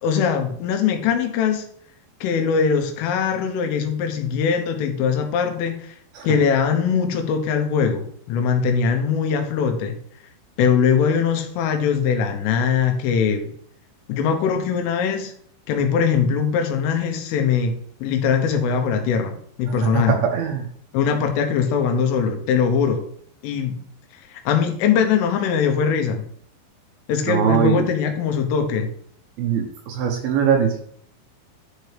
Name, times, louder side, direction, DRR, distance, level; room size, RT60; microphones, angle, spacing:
voice 1, 0.0-1.7 2.2-6.0 6.2-10.0 10.6-13.5 14.1-15.3 15.7-17.7 18.0-20.2 20.9-23.0 23.4-23.8 24.3-26.2 27.1-28.9, left 6 dB, 90° left, 5 dB, 3.6 m, -21 dB
voice 2, 19.7-20.7 27.3-27.8 29.4-30.8, right 7 dB, 80° right, 2 dB, 2.1 m, -21 dB
11.0 x 4.6 x 3.4 m, 0.63 s
omnidirectional pair, 5.6 m